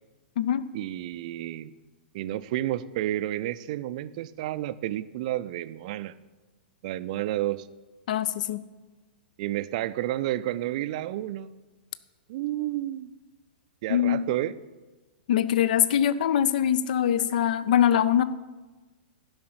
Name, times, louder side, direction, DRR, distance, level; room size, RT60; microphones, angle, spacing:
voice 1, 0.7-1.7 2.1-6.1 6.8-7.7 9.4-11.5 12.3-13.1 13.8-14.6, right 14 dB, 40° right, 14 dB, 0.4 m, -30 dB
voice 2, 8.1-8.6 13.9-14.3 15.3-18.2, left 10 dB, 50° left, 16 dB, 0.4 m, -23 dB
12.0 x 5.6 x 5.8 m, 1.2 s
figure-of-eight pair, 105°, 6 cm